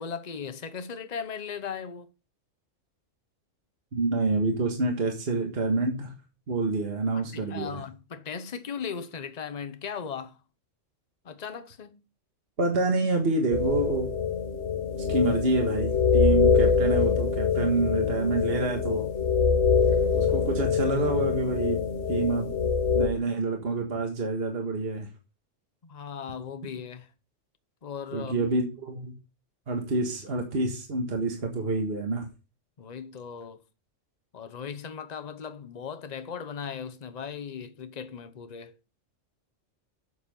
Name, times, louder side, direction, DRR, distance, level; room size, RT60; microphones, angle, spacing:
voice 1, 0.0-2.1 7.1-10.4 11.2-12.0 25.8-27.1 27.8-28.5 32.8-33.6 34.3-38.7, left 7 dB, 40° left, 0.9 m, -38 dB
voice 2, 3.9-6.1 6.5-7.8 12.6-14.2 15.1-19.0 20.1-22.5 22.9-25.1 28.1-29.1 29.7-32.3, right 3 dB, 50° right, 1.8 m, -27 dB
sound 1, 13.5-23.1, left 6 dB, 70° left, 1.3 m, -24 dB
8.2 x 7.0 x 5.4 m
omnidirectional pair, 1.3 m